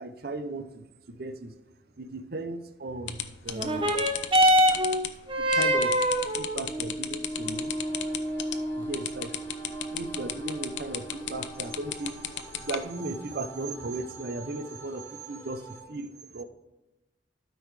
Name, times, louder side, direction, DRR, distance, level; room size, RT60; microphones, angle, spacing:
voice 1, 0.0-1.5 2.0-4.0 5.4-5.9 6.4-7.7 8.7-9.4 9.9-16.4, right 2 dB, 55° right, 9 dB, 0.7 m, -36 dB
sound 1, 3.1-12.8, left 10 dB, 80° left, 0.6 m, -34 dB
sound 2, 3.5-12.5 13.3-13.4, equal, 30° right, 1.0 m, -27 dB
sound 3, 7.3-15.8, right 1 dB, 15° left, 1.3 m, -48 dB
12.5 x 5.4 x 3.3 m, 1.0 s
head